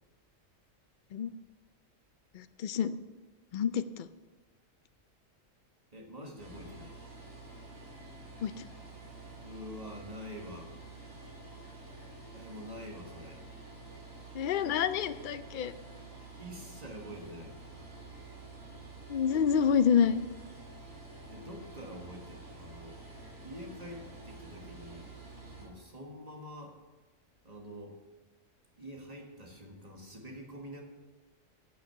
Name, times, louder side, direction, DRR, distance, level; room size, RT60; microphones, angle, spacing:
voice 1, 2.3-2.9 3.5-4.1 8.4-8.5 14.3-15.7 19.1-20.2, left 7 dB, 60° left, 13 dB, 0.5 m, -28 dB
voice 2, 5.9-7.0 9.4-10.7 12.3-13.4 16.4-17.6 21.3-23.0 23.4-25.1 25.6-26.8 27.4-28.0 28.8-30.8, equal, 30° right, 1 dB, 1.7 m, -46 dB
sound 1, 6.4-25.7, right 3 dB, 90° right, 3.7 m, -49 dB
15.0 x 6.4 x 5.7 m, 1.2 s
omnidirectional pair, 1.4 m